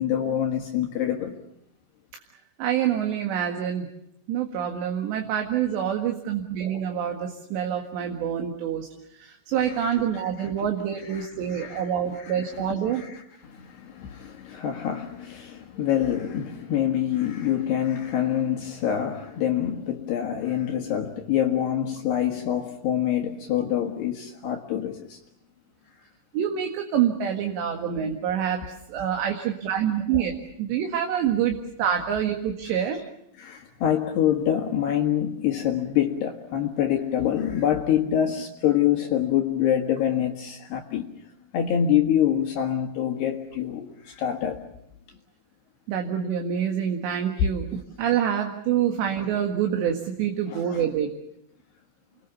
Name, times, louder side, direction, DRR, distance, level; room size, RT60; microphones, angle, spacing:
voice 1, 0.0-1.4 9.5-25.2 32.8-33.0 33.4-41.1 41.5-44.6 47.4-47.5 48.8-48.9 50.5-50.9, left 10 dB, 65° left, 2 dB, 3.2 m, -26 dB
voice 2, 2.6-3.9 4.3-8.9 9.1-13.0 26.3-28.6 28.9-33.0 45.9-47.7 48.0-51.1, right 9 dB, 65° right, 3 dB, 3.8 m, -26 dB
29.5 x 22.0 x 7.1 m, 0.77 s
omnidirectional pair, 5.8 m